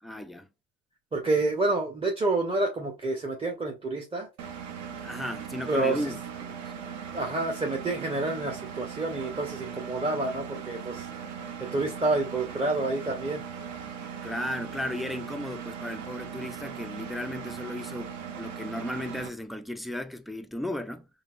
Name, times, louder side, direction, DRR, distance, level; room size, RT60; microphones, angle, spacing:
voice 1, 0.0-0.5 5.0-6.6 14.2-21.1, left 1 dB, ahead, 0.3 m, -35 dB
voice 2, 1.1-4.3 5.7-6.1 7.1-11.1 11.6-13.4, right 2 dB, 15° right, 0.7 m, -28 dB
Engine, 4.4-19.3, right 7 dB, 55° right, 0.8 m, -39 dB
4.0 x 2.7 x 2.4 m
hypercardioid pair, 80°, 34 cm